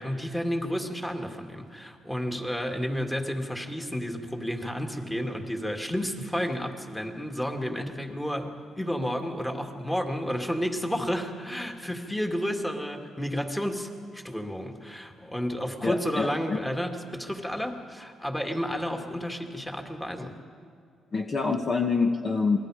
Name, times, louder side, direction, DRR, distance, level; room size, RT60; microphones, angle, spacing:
voice 1, 0.0-20.3, equal, 10° left, 3 dB, 2.3 m, -31 dB
voice 2, 15.8-16.6 20.2-20.3 21.1-22.6, left 4 dB, 35° left, 3 dB, 1.3 m, -26 dB
27.5 x 20.5 x 5.0 m, 2.3 s
cardioid pair, 90°, 0 cm